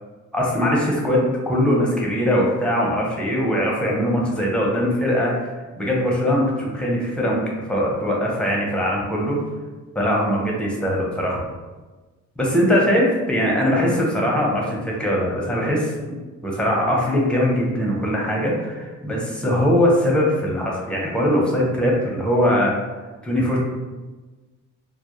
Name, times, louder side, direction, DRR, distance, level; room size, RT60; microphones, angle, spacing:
voice 1, 0.3-5.3 5.8-9.4 9.9-11.4 12.4-16.2 16.4-22.7 23.2-23.6, equal, 5° left, -3 dB, 0.6 m, -21 dB
2.2 x 2.0 x 2.9 m, 1.2 s
cardioid pair, 90°, 30 cm